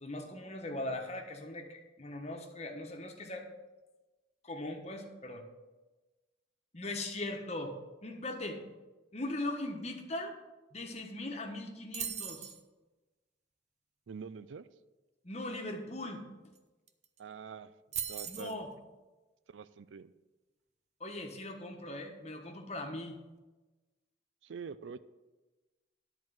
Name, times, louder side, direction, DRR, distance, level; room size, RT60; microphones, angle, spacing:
voice 1, 0.0-3.5 4.4-5.4 6.7-7.8 8.0-8.6 9.1-10.3 10.7-12.5 15.2-16.2 18.3-18.7 21.0-23.2, left 1 dB, 35° left, 3 dB, 1.2 m, -40 dB
sound 1, 11.9-12.6 16.6-16.7 16.9-17.2 17.9-18.6, right 9 dB, 35° right, 0.7 m, -38 dB
voice 2, 14.1-14.7 17.2-17.7 18.1-18.6 19.5-20.1 24.4-25.0, right 6 dB, 75° right, 14 dB, 0.4 m, -45 dB
10.5 x 4.5 x 7.6 m, 1.2 s
head